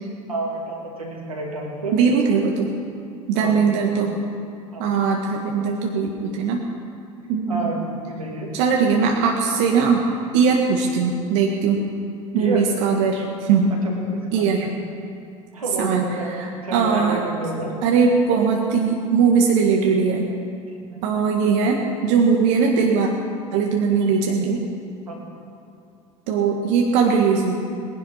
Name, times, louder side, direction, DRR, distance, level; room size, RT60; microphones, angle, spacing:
voice 1, 0.3-2.0 3.4-3.5 3.8-3.9 4.7-4.9 7.5-8.5 12.3-12.6 13.8-14.7 15.5-17.7 20.9-21.0 25.0-25.1, right 2 dB, 90° right, -2 dB, 2.9 m, -30 dB
voice 2, 1.9-2.7 3.3-4.2 4.8-6.6 7.3-7.7 8.5-10.0 10.3-11.8 12.3-13.7 14.3-14.7 15.8-17.3 17.8-20.2 21.0-23.1 23.5-24.6 26.3-27.6, right 5 dB, 60° right, 0 dB, 1.6 m, -20 dB
19.0 x 11.0 x 5.7 m, 2.5 s
hypercardioid pair, 75°, 18 cm